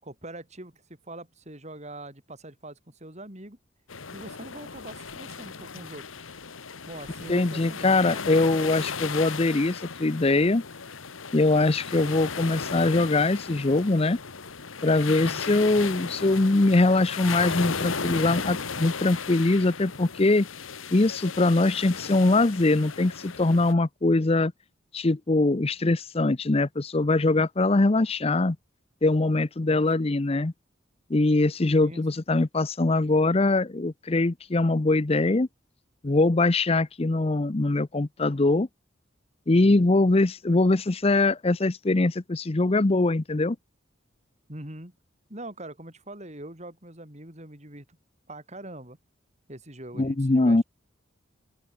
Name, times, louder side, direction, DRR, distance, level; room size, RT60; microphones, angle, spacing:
voice 1, 0.0-3.6 4.1-6.0 6.9-8.1 15.1-15.4 29.7-30.1 31.8-32.1 39.5-39.9 44.5-44.9 45.3-48.0 48.3-49.0 49.5-50.6, right 1 dB, 35° right, 5.7 m, -43 dB
sound 1, 3.9-23.7, left 5 dB, 90° left, 1.6 m, -36 dB
voice 2, 7.3-10.6 11.3-14.2 14.8-20.5 20.9-24.5 24.9-28.6 29.0-30.5 31.1-35.5 36.0-38.7 39.5-43.6 50.0-50.6, left 2 dB, 30° left, 0.6 m, -22 dB
open air
head